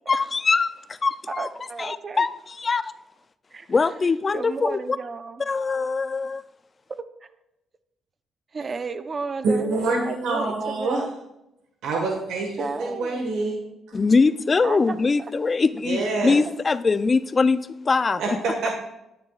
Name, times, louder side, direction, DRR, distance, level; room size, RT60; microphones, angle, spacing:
voice 1, 0.1-1.5 1.8-2.9 3.7-4.8 5.5-6.4 13.9-18.4, left 4 dB, 30° left, 14 dB, 0.4 m, -22 dB
voice 2, 1.4-2.2 3.5-3.9 4.3-5.4 8.5-11.1 12.6-13.4 14.6-15.0 16.4-16.6, right 4 dB, 35° right, 11 dB, 0.7 m, -33 dB
voice 3, 9.4-11.0 11.8-13.6 15.8-16.4 18.2-18.8, right 3 dB, 85° right, 0 dB, 1.4 m, -26 dB
10.0 x 9.4 x 2.4 m, 0.87 s
cardioid pair, 95°, 0 cm